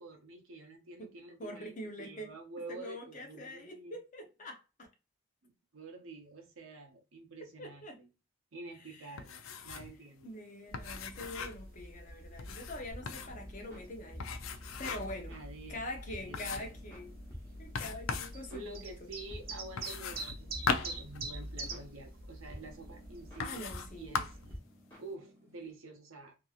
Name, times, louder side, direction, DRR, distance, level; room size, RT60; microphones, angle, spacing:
voice 1, 0.0-3.9 5.4-8.1 8.5-10.3 15.3-16.8 18.5-24.4 25.0-26.4, right 2 dB, 80° right, 0.8 m, -49 dB
voice 2, 1.4-2.3 2.7-4.9 7.6-8.0 8.9-9.2 10.2-14.3 14.8-15.3 15.7-17.1 17.6-19.1 23.4-24.2, left 1 dB, 35° left, 0.6 m, -44 dB
sound 1, 9.2-10.0 10.2-10.3 10.7-11.7 12.4-13.4 14.2-15.2 15.7-15.8 16.3-16.8 17.7-18.4 19.8-21.8 22.6-22.7 23.4-23.9 24.1-24.5, left 5 dB, 75° left, 0.4 m, -38 dB
sound 2, 10.7-24.6, right 2 dB, 45° right, 0.7 m, -47 dB
sound 3, 12.9-25.7, equal, 10° left, 1.2 m, -50 dB
2.7 x 2.7 x 2.3 m
head